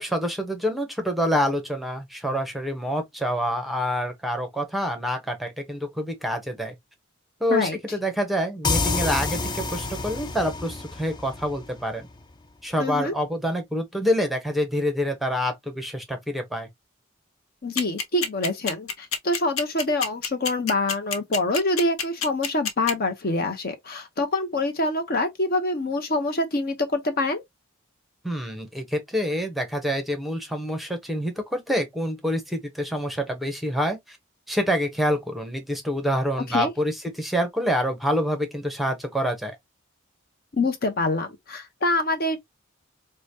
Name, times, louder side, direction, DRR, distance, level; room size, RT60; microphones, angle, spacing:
voice 1, 0.0-6.7 7.4-12.1 12.6-16.7 28.2-34.2 34.5-39.6, equal, ahead, 0.8 m, -27 dB
sound 1, 8.6-12.2, left 3 dB, 20° left, 0.4 m, -28 dB
voice 2, 12.8-13.1 17.6-27.4 36.5-36.7 40.5-42.4, left 2 dB, 45° left, 0.7 m, -25 dB
sound 2, 17.8-22.9, left 6 dB, 85° left, 0.9 m, -26 dB
4.9 x 2.2 x 2.7 m
head